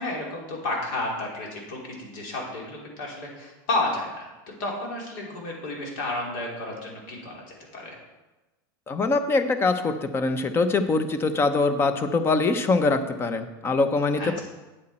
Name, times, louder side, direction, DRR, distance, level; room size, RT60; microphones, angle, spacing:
voice 1, 0.0-8.0 14.2-14.4, left 2 dB, 70° left, -2 dB, 3.4 m, -32 dB
voice 2, 8.9-14.4, left 3 dB, 20° left, 10 dB, 0.8 m, -23 dB
8.9 x 8.3 x 4.4 m, 1.1 s
supercardioid pair, 130°, 11 cm